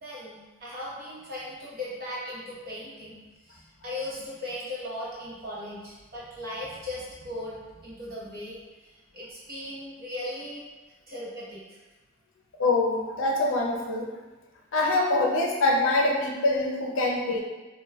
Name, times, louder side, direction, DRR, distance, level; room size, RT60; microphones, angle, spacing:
voice 1, 0.0-3.2 3.4-10.6 11.1-11.8, left 1 dB, 45° right, -7 dB, 0.9 m, -38 dB
voice 2, 12.6-14.1 14.7-17.4, left 2 dB, 75° left, 0 dB, 0.5 m, -24 dB
4.9 x 2.2 x 2.2 m, 1.2 s
head